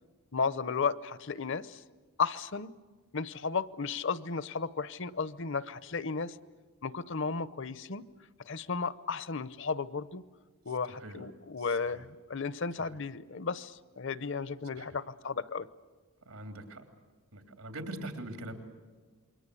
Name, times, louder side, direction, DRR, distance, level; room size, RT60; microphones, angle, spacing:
voice 1, 0.3-1.8 2.2-2.7 3.1-6.4 6.8-8.0 8.5-10.2 10.7-15.7, left 5 dB, 55° left, 17 dB, 0.7 m, -34 dB
voice 2, 11.6-12.1 12.8-13.0 14.7-15.0 16.3-16.8 17.3-18.5, right 1 dB, 90° right, 6 dB, 3.3 m, -43 dB
27.5 x 23.0 x 8.4 m, 1.4 s
head